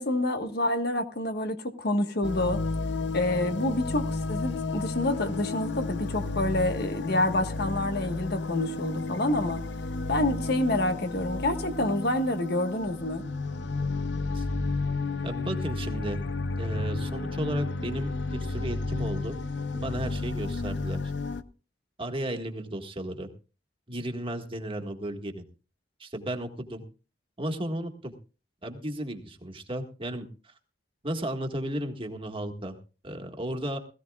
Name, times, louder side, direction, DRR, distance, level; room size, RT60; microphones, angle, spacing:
voice 1, 0.0-2.6 3.1-9.6 10.1-13.2, left 1 dB, 60° left, 1.5 m, -28 dB
sound 1, 2.2-21.4, left 3 dB, 80° left, 0.8 m, -32 dB
voice 2, 15.2-16.2 16.6-19.4 19.7-21.0 22.0-23.3 23.9-25.5 26.0-26.8 27.4-28.1 28.6-30.5 31.0-32.7 33.0-33.8, right 1 dB, 30° right, 1.8 m, -34 dB
20.5 x 15.0 x 2.4 m
head